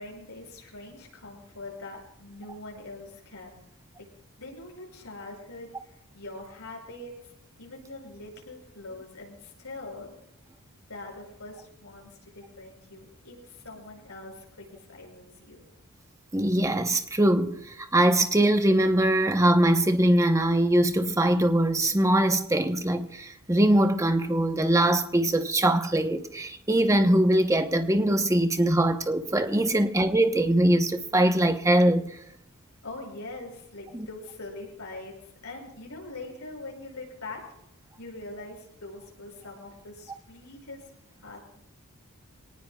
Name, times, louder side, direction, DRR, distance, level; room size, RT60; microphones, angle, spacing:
voice 1, 0.0-3.6 4.0-4.1 4.4-7.3 7.6-10.1 10.9-15.7 29.6-29.8 32.8-37.4 38.0-40.8 41.2-41.4, left 2 dB, 90° left, 6.2 m, -43 dB
voice 2, 16.3-32.1 33.9-34.1, right 1 dB, 15° right, 0.8 m, -22 dB
24.5 x 18.5 x 2.3 m
head